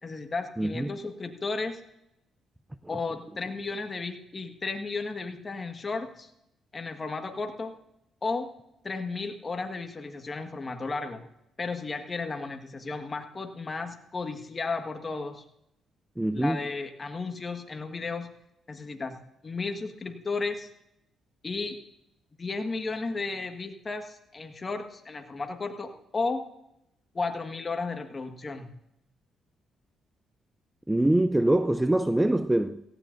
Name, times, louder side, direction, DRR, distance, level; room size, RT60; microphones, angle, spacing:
voice 1, 0.0-1.8 2.9-6.3 6.7-7.7 8.2-8.5 8.8-11.2 11.6-15.4 16.3-18.3 18.7-19.2 19.4-20.7 21.4-21.8 22.4-26.4 27.1-28.7, left 3 dB, 30° left, 1.6 m, -34 dB
voice 2, 0.6-0.9 16.2-16.6 30.9-32.8, right 1 dB, 10° right, 0.4 m, -24 dB
17.5 x 16.0 x 2.6 m
cardioid pair, 90°, 0 cm